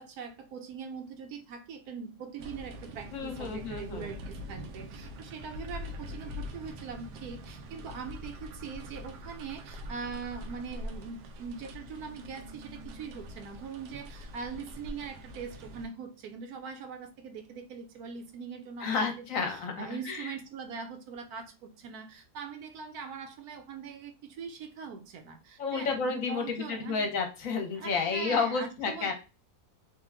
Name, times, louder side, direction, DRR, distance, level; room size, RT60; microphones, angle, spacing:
voice 1, 0.0-27.1 27.7-29.1, right 6 dB, 75° right, 6 dB, 1.1 m, -42 dB
sound 1, 2.4-15.9, equal, 90° right, 1.2 m, -44 dB
voice 2, 3.1-4.1 18.8-20.3 25.6-29.1, left 5 dB, 60° left, 4 dB, 1.1 m, -31 dB
3.6 x 2.2 x 3.3 m, 0.31 s
omnidirectional pair, 1.7 m